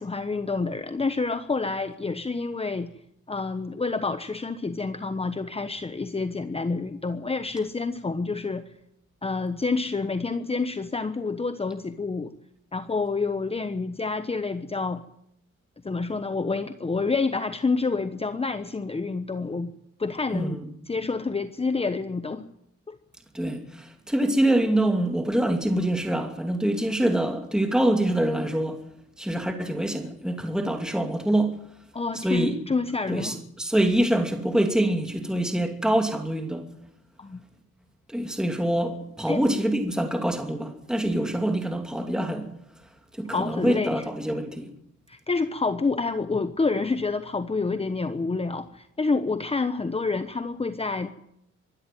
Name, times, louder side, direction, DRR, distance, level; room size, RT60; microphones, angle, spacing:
voice 1, 0.0-2.9 3.3-8.6 9.2-12.3 12.7-15.0 15.8-19.7 20.0-20.6 20.9-22.4 22.9-23.0 31.9-33.4 37.2-37.4 39.3-39.4 43.3-44.0 45.1-51.1, left 4 dB, 20° left, 1.1 m, -28 dB
voice 2, 20.3-20.7 23.3-28.8 29.2-31.6 32.1-32.5 33.1-36.7 38.1-42.5 43.2-44.7, right 1 dB, ahead, 2.7 m, -25 dB
24.5 x 12.0 x 9.2 m
cardioid pair, 90°, 30 cm